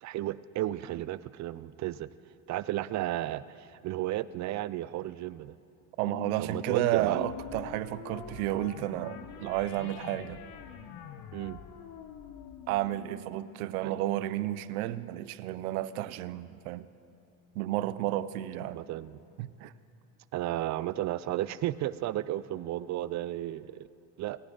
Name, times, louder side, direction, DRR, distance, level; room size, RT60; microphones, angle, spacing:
voice 1, 0.0-2.1 2.5-5.6 6.4-7.2 11.3-11.6 13.8-13.9 18.7-19.2 20.3-23.9 24.2-24.4, right 14 dB, 45° right, 0.4 m, -33 dB
sound 1, 6.0-14.8, left 7 dB, 65° left, 1.1 m, -45 dB
voice 2, 6.0-10.5 12.7-16.9 17.5-18.9 19.4-19.7, right 15 dB, 85° right, 0.6 m, -32 dB
26.5 x 9.8 x 3.9 m
supercardioid pair, 95°, 42 cm